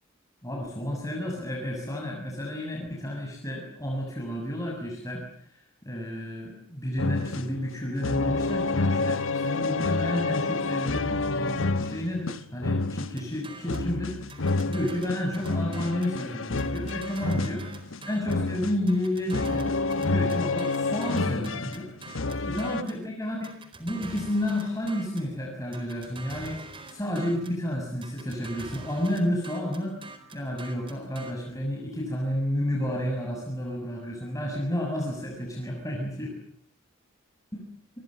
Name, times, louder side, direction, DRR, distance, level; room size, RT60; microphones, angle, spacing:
voice 1, 0.4-21.9 22.4-30.0 30.3-36.4 37.5-37.6, left 1 dB, 15° left, -1 dB, 6.9 m, -31 dB
sound 1, 7.0-22.8, left 3 dB, 70° left, 1.1 m, -29 dB
sound 2, 13.2-13.9 14.3-16.2 16.6-18.5 18.9-23.0 23.4-25.3 25.7-27.6 28.0-31.3, right 3 dB, 25° right, 4.3 m, -45 dB
29.0 x 23.0 x 7.7 m, 0.63 s
head